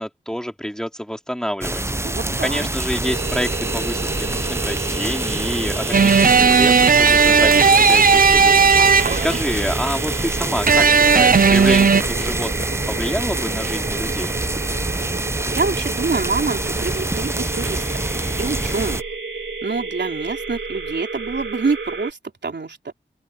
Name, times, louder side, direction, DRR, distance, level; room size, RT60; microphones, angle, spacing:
voice 1, 0.0-1.8 2.4-8.6 9.2-14.3, equal, 5° left, 2.9 m, -27 dB
sound 1, 1.6-19.0, right 1 dB, 15° right, 0.6 m, -26 dB
voice 2, 2.0-2.7 8.8-9.4 15.5-17.9 18.4-19.0 19.6-22.9, right 4 dB, 70° right, 3.7 m, -26 dB
sound 2, 3.0-22.1, right 4 dB, 90° right, 3.2 m, -31 dB
sound 3, 5.9-9.4 10.7-12.0, right 5 dB, 50° right, 0.6 m, -14 dB
open air
wide cardioid pair, 75°, 19 cm